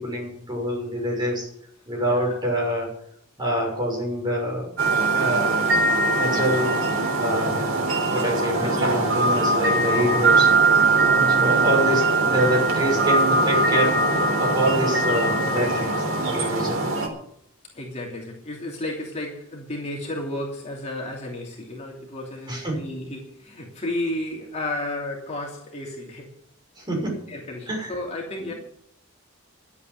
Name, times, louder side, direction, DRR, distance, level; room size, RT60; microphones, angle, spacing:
voice 1, 0.0-1.5 1.9-2.9 3.4-4.7 5.1-5.5 6.1-6.8 7.2-7.7 8.1-10.5 11.4-14.0 14.4-16.8 22.5-22.9 26.8-27.3 27.7-28.0, equal, 20° right, -1 dB, 6.5 m, -26 dB
voice 2, 2.1-2.4 10.9-11.8 17.7-26.3 27.3-28.5, left 1 dB, 30° left, -2 dB, 2.9 m, -33 dB
sound 1, 4.8-17.1, right 3 dB, 75° right, 3.8 m, -21 dB
12.0 x 8.6 x 9.9 m, 0.71 s
head